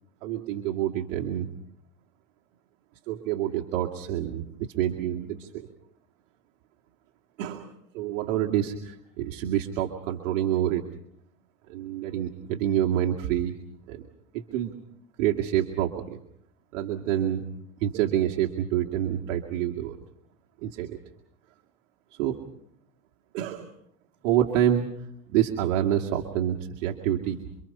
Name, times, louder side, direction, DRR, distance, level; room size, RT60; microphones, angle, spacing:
voice 1, 0.2-1.5 3.1-4.4 4.8-5.7 7.4-10.8 11.7-13.6 13.9-14.1 14.3-14.8 15.2-16.2 16.7-17.4 17.8-20.0 20.6-21.0 22.1-22.4 23.3-23.7 24.2-24.9 25.3-27.4, right 11 dB, 75° right, 1 dB, 2.3 m, -27 dB
27.5 x 24.5 x 5.5 m, 0.74 s
supercardioid pair, 125°, 38 cm